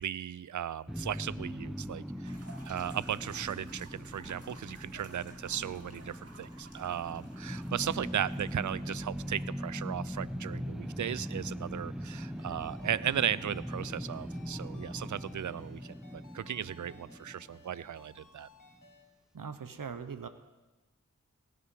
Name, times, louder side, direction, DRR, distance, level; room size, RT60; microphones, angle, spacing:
voice 1, 0.0-2.4 2.7-15.9 16.3-18.5, right 9 dB, 65° right, 20 dB, 0.5 m, -36 dB
sound 1, 0.9-18.1, equal, ahead, 0.8 m, -41 dB
sound 2, 2.2-9.8, right 2 dB, 45° right, 2.1 m, -55 dB
Ringtone, 12.2-19.0, left 3 dB, 70° left, 1.8 m, -59 dB
voice 2, 19.3-20.3, right 6 dB, 85° right, 10 dB, 0.9 m, -40 dB
17.0 x 12.5 x 5.5 m, 1.1 s
wide cardioid pair, 45°, 32 cm